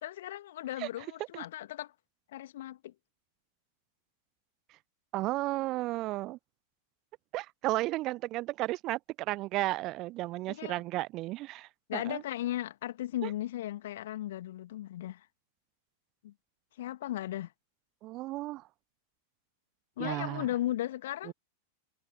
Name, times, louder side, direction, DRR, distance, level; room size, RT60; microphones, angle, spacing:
voice 1, 0.0-1.9 2.3-2.9 10.5-10.8 11.9-15.3 16.2-16.3 16.8-17.5 20.0-21.3, left 13 dB, 55° left, 2.2 m, -36 dB
voice 2, 5.1-6.4 7.3-12.2 13.2-13.3 18.0-18.6 20.0-20.5 21.3-21.4, right 18 dB, 40° right, 0.8 m, -33 dB
figure-of-eight pair, 90°, 0 cm